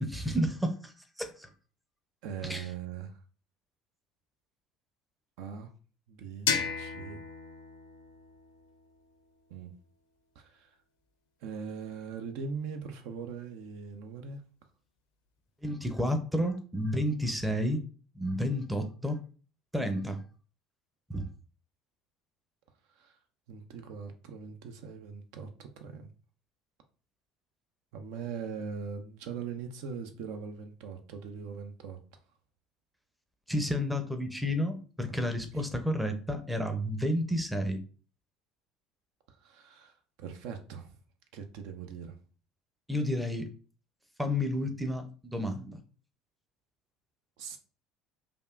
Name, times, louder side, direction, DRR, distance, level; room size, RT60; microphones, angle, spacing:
voice 1, 0.0-0.9 1.2-1.5 2.5-2.6 15.6-17.8 18.2-19.2 19.7-20.2 21.1-21.3 33.5-37.8 42.9-43.5 44.2-45.8, equal, 5° right, 0.5 m, -31 dB
voice 2, 2.2-3.2 5.4-5.7 6.1-6.5 6.8-7.2 9.5-9.7 10.4-10.7 11.4-14.4 23.0-23.2 23.5-26.1 27.9-32.0 35.1-35.2 35.5-35.6 39.3-40.9 41.3-42.2 47.4-47.6, right 6 dB, 65° right, 0.4 m, -41 dB
sound 1, 6.5-9.3, left 6 dB, 75° left, 0.5 m, -35 dB
3.4 x 2.4 x 2.4 m
figure-of-eight pair, 65°, 0 cm